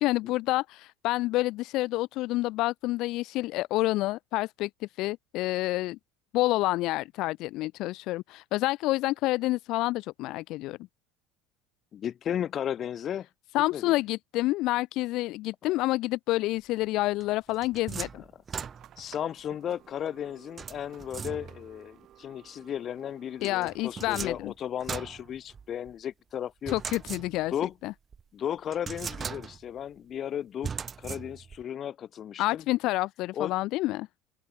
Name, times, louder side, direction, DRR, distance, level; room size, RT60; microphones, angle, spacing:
voice 1, 0.0-6.0 6.3-10.8 13.5-18.2 23.4-24.5 26.7-27.5 27.8-27.9 32.4-34.1, left 18 dB, 65° left, 0.3 m, -28 dB
voice 2, 11.9-13.3 13.7-13.9 19.0-26.8 27.5-27.7 28.3-30.7 31.0-32.6 33.3-33.5, left 9 dB, 45° left, 1.1 m, -35 dB
sound 1, 17.2-19.2 20.6-21.8 23.4-25.9 26.7-27.7 28.1-28.2 28.7-29.8 30.6-31.6, right 6 dB, 30° right, 1.3 m, -39 dB
sound 2, 18.6-24.3, right 12 dB, 50° right, 5.1 m, -56 dB
open air
supercardioid pair, 100°, 0 cm